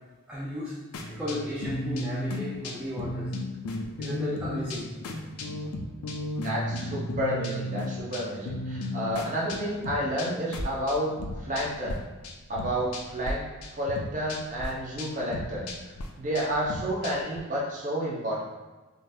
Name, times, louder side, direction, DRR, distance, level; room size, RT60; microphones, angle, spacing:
voice 1, 0.3-0.8 1.1-3.3 4.0-4.9, equal, 5° right, -8 dB, 0.3 m, -34 dB
sound 1, 0.9-12.0 12.2-13.3 13.6-17.4, left 1 dB, 85° left, 0.4 m, -35 dB
voice 2, 6.4-12.0 12.5-13.4 13.7-15.7 16.2-18.4, equal, 35° right, -5 dB, 0.7 m, -30 dB
3.8 x 2.4 x 2.6 m, 1.2 s
head